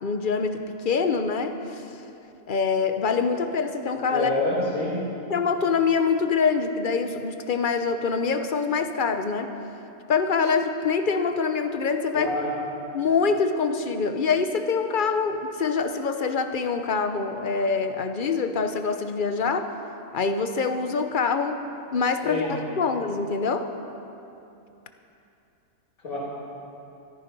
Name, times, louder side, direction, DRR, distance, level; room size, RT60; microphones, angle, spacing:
voice 1, 0.0-1.8 2.5-4.3 5.3-9.5 10.1-12.3 12.9-19.7 20.1-21.6 21.9-23.7, left 5 dB, 45° left, 7 dB, 0.8 m, -25 dB
voice 2, 4.1-5.0 12.1-12.5 22.2-22.5 26.0-26.2, left 2 dB, 85° left, -10 dB, 3.6 m, -27 dB
14.0 x 14.0 x 5.3 m, 2.8 s
omnidirectional pair, 1.5 m